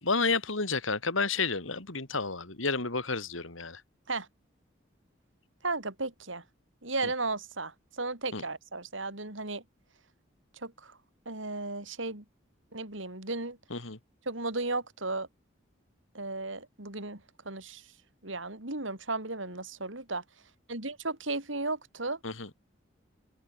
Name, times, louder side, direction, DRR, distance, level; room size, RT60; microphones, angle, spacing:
voice 1, 0.0-3.8 8.3-8.4 13.7-14.0 22.2-22.5, left 4 dB, 85° left, 3.4 m, -31 dB
voice 2, 5.6-6.4 6.8-9.6 10.6-11.0 11.3-12.2 12.7-13.6 14.3-15.3 16.1-17.8 18.2-20.2 20.7-22.2, right 3 dB, 80° right, 5.2 m, -35 dB
head